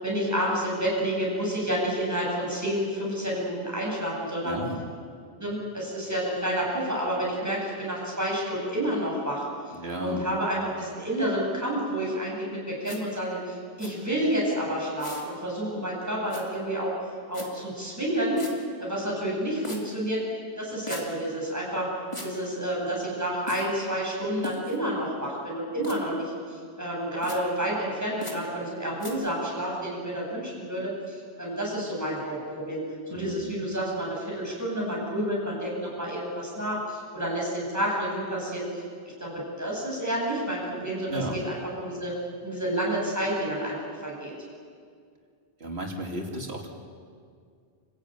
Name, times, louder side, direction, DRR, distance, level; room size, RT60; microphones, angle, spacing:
voice 1, 0.0-4.6 5.4-9.7 10.0-16.9 17.3-18.4 18.8-20.2 20.6-21.9 22.2-32.8 33.1-38.8 39.2-42.1 42.4-43.8 44.0-44.3, right 1 dB, 15° right, -4 dB, 8.1 m, -29 dB
voice 2, 4.4-4.8 9.7-10.2 33.1-33.5 41.1-41.4 45.6-46.7, right 1 dB, 80° right, 1 dB, 3.2 m, -33 dB
sound 1, 12.8-13.0 13.8-13.9 15.0-15.3 16.3-16.4 17.3-17.5 18.4-18.5 19.6-19.8 20.9-21.0 22.1-22.3 23.5-23.7 24.4-24.8 25.8-26.0 27.2-27.4 28.2-28.4 29.0-29.1, left 1 dB, 30° left, 2.9 m, -38 dB
28.0 x 15.0 x 9.4 m, 2.1 s
omnidirectional pair, 1.1 m